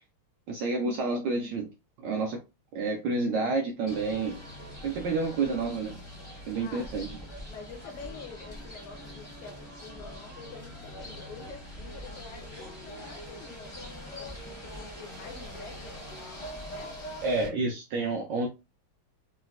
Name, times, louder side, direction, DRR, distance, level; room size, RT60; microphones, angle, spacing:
voice 1, 0.5-1.7 2.0-2.4 2.7-4.4 4.8-6.0 6.5-7.2 17.2-18.5, right 3 dB, 75° right, 1.0 m, -29 dB
sound 1, 3.9-17.5, left 1 dB, 30° left, 0.5 m, -44 dB
voice 2, 6.4-6.9 7.5-16.1 16.7-17.0, left 5 dB, 80° left, 1.7 m, -47 dB
sound 2, 11.8-17.3, equal, 60° left, 0.9 m, -46 dB
3.9 x 2.1 x 2.3 m
omnidirectional pair, 2.4 m